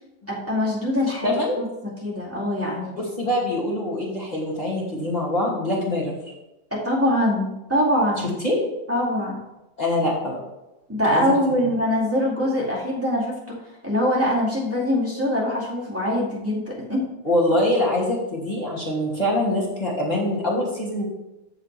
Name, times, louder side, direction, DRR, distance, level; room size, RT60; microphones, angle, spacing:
voice 1, 0.3-1.7 2.0-3.0 6.7-8.3 8.9-9.4 10.9-13.5 13.8-17.1, left 1 dB, 5° right, -6 dB, 2.2 m, -23 dB
voice 2, 1.2-1.6 2.9-6.3 8.4-8.6 9.8-10.4 11.0-11.2 17.2-21.0, left 1 dB, 20° left, -5 dB, 2.6 m, -24 dB
14.0 x 4.9 x 3.4 m, 0.95 s
omnidirectional pair, 2.1 m